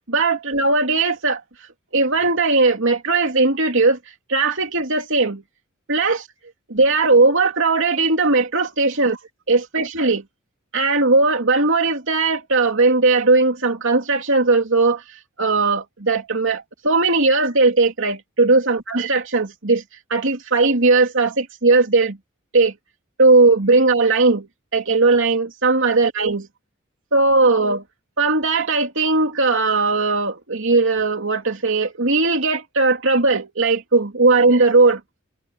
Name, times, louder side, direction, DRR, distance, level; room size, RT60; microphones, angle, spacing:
voice 1, 0.1-1.4 1.9-4.0 4.3-5.4 5.9-6.3 6.7-9.2 9.5-10.2 10.7-15.0 15.4-19.8 20.1-22.2 22.5-22.7 23.2-26.5 27.1-27.8 28.2-35.0, right 3 dB, 65° right, 3.0 m, -18 dB
head